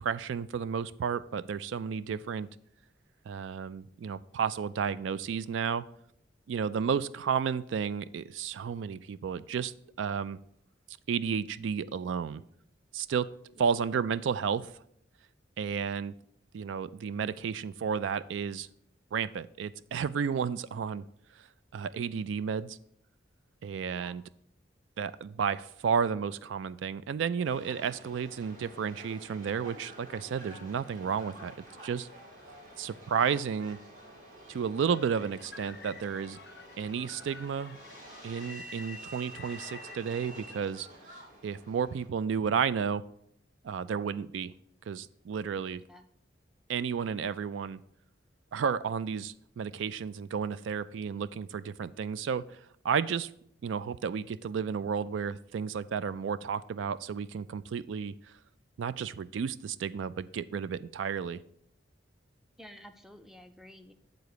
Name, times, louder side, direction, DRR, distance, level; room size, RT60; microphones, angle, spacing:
voice 1, 0.0-2.5 3.3-5.9 6.5-9.7 10.0-10.4 11.1-12.4 12.9-13.3 13.6-14.7 15.6-16.1 16.5-18.7 19.1-21.0 21.7-22.8 23.6-24.2 25.0-31.5 31.8-32.1 32.8-33.8 34.5-36.4 36.8-37.8 38.2-40.9 41.4-43.0 43.6-44.5 44.9-45.8 46.7-47.8 48.5-52.4 52.8-53.3 53.6-58.2 58.8-61.4, right 6 dB, 85° right, 16 dB, 0.3 m, -32 dB
Subway metro underground, 27.4-42.1, right 1 dB, 40° right, 2.0 m, -49 dB
sound 1, 34.8-40.0, left 6 dB, 60° left, 0.5 m, -50 dB
voice 2, 62.6-63.9, equal, ahead, 7 dB, 0.5 m, -51 dB
8.2 x 3.9 x 6.6 m, 0.69 s
head